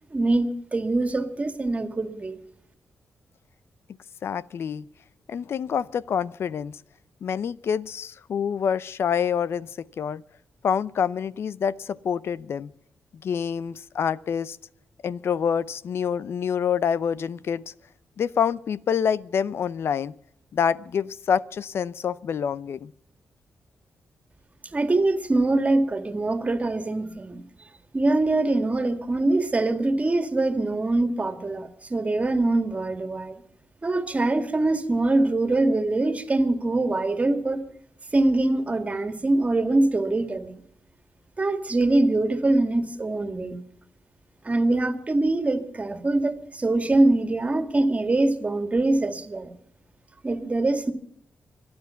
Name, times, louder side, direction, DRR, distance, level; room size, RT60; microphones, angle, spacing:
voice 1, 0.1-2.4 24.7-27.4 27.9-33.4 33.8-37.6 38.1-40.6 41.4-43.6 44.4-49.5 50.2-50.9, right 2 dB, 30° right, 2.1 m, -23 dB
voice 2, 4.2-4.8 5.3-6.8 7.2-10.2 10.6-12.7 13.2-14.6 15.0-17.7 18.2-20.1 20.5-22.9, left 7 dB, 70° left, 0.6 m, -27 dB
25.5 x 9.7 x 5.8 m
cardioid pair, 75°, 4 cm